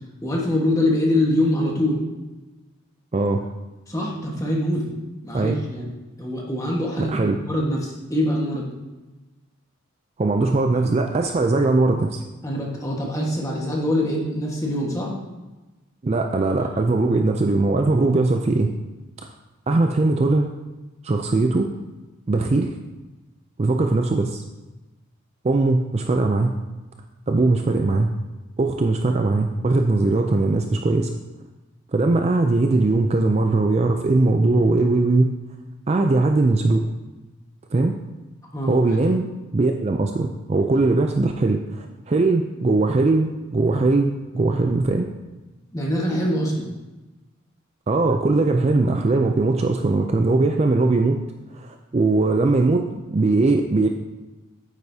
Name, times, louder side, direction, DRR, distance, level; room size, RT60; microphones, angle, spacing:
voice 1, 0.2-2.0 3.9-4.9 5.2-5.9 6.2-8.7 12.4-15.2 38.5-38.8 45.7-46.7, left 1 dB, 15° left, -2 dB, 1.4 m, -24 dB
voice 2, 3.1-3.4 5.3-5.6 7.0-7.4 10.2-12.2 16.0-18.7 19.2-19.3 19.7-20.5 21.0-21.7 22.3-22.7 23.6-24.4 25.4-26.6 27.3-28.1 28.6-31.1 31.9-35.3 35.9-36.8 37.7-38.0 38.7-39.3 39.5-45.1 47.9-51.2 51.5-53.9, right 2 dB, 30° right, 4 dB, 0.4 m, -20 dB
9.0 x 8.1 x 2.8 m, 1.1 s
head